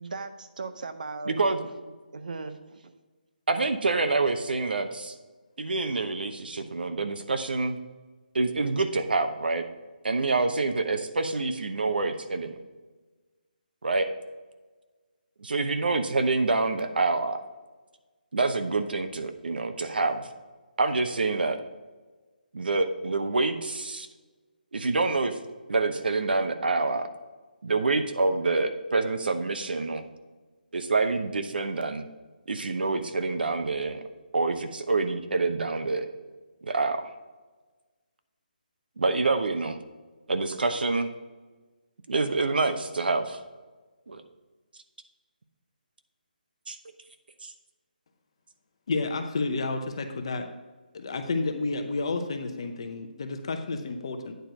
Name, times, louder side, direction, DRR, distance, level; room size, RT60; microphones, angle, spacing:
voice 1, 0.0-1.4 2.1-2.9, right 3 dB, 55° right, 10 dB, 0.7 m, -38 dB
voice 2, 1.3-1.6 3.5-5.1 5.6-7.8 8.3-9.6 10.0-12.5 13.8-14.1 15.4-17.4 18.3-20.3 20.8-21.6 22.5-24.1 24.7-25.4 25.7-27.1 27.6-30.0 30.7-32.1 32.5-34.0 34.3-36.1 36.6-37.1 39.0-39.8 40.3-41.1 42.1-43.4 44.1-44.2 46.7-46.8 47.4-47.5, right 3 dB, 80° right, 8 dB, 0.9 m, -27 dB
voice 3, 48.9-50.5 50.9-54.3, left 3 dB, 35° left, 6 dB, 0.7 m, -30 dB
9.3 x 4.5 x 5.1 m, 1.3 s
hypercardioid pair, 175°, 5 cm